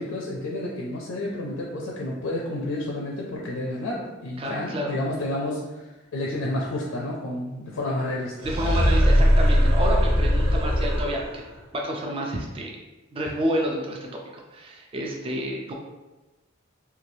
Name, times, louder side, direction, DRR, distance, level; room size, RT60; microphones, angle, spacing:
voice 1, 0.0-8.5 13.2-13.3, left 1 dB, 70° left, -3 dB, 0.4 m, -30 dB
voice 2, 4.4-4.9 8.4-11.4 11.7-12.7 13.1-15.7, equal, 25° right, 0 dB, 0.3 m, -29 dB
sound 1, 8.4-11.4, equal, 90° right, 0.7 m, -20 dB
3.1 x 2.3 x 2.6 m, 1.1 s
head